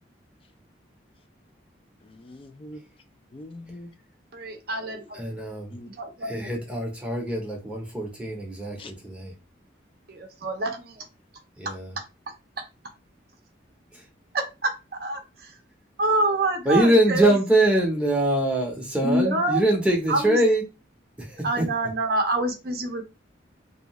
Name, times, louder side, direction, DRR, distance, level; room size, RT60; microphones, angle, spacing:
voice 1, 2.0-2.9 3.3-3.9 5.7-5.9 6.4-6.6 8.8-8.9, left 1 dB, 30° left, 0.3 m, -43 dB
voice 2, 4.3-5.2 5.9-6.5 10.1-11.0 14.3-14.7 15.0-15.6 16.0-17.3 19.0-19.6 20.1-20.4 21.4-23.0, right 2 dB, 50° right, 0.5 m, -26 dB
voice 3, 5.1-5.7 6.3-9.3 11.6-11.9 13.9-14.1 16.6-20.6 21.2-21.6, right 1 dB, 5° right, 0.6 m, -23 dB
2.7 x 2.3 x 2.9 m
head